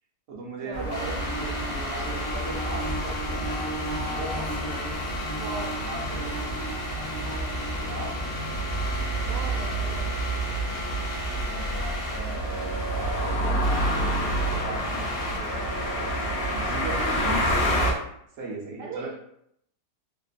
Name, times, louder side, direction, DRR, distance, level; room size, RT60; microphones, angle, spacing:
voice 1, 0.3-3.6 4.1-4.6 5.8-6.5 7.8-8.2 11.4-16.1 16.5-17.8 18.4-19.2, right 2 dB, 60° right, -3 dB, 0.9 m, -38 dB
sound 1, 0.7-17.9, right 1 dB, 90° left, 0.5 m, -30 dB
Bird / Buzz, 0.7-13.4, right 2 dB, 30° right, 0.6 m, -38 dB
sound 2, 0.9-18.0, left 1 dB, 70° left, 1.2 m, -35 dB
voice 2, 5.3-5.7 9.2-10.1 18.8-19.2, right 4 dB, 80° right, 0 dB, 1.2 m, -38 dB
3.0 x 2.1 x 2.4 m, 0.71 s
omnidirectional pair, 1.8 m